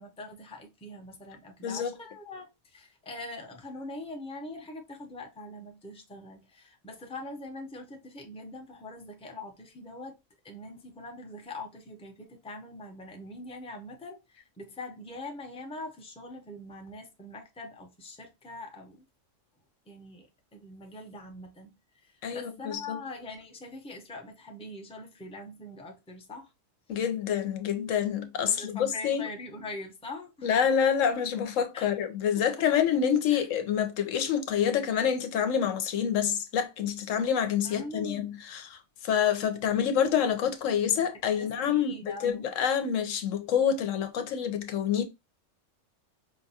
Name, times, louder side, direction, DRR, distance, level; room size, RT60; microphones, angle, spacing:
voice 1, 0.0-10.1 10.4-14.2 14.6-19.0 19.9-21.7 22.3-26.5 28.5-30.5 31.7-31.9 33.3-33.4 37.6-38.4 41.0-41.1 41.4-42.5, left 2 dB, 5° left, 0.6 m, -43 dB
voice 2, 1.6-1.9 22.2-23.0 26.9-29.3 30.4-45.0, left 8 dB, 85° left, 1.1 m, -27 dB
5.1 x 2.3 x 2.7 m
omnidirectional pair, 1.3 m